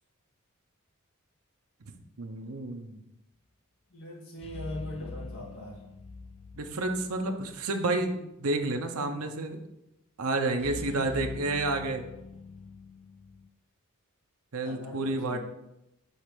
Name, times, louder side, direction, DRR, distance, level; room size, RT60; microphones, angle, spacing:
voice 1, 2.2-3.0 6.5-9.6 10.2-12.1 14.5-15.4, right 2 dB, 70° right, 5 dB, 0.8 m, -30 dB
voice 2, 3.9-5.8 14.6-15.4, left 1 dB, 65° left, -3 dB, 1.8 m, -41 dB
sound 1, 4.4-7.7 7.9-8.1 10.6-13.5, left 4 dB, 25° left, 0.3 m, -44 dB
6.6 x 3.2 x 6.0 m, 0.88 s
head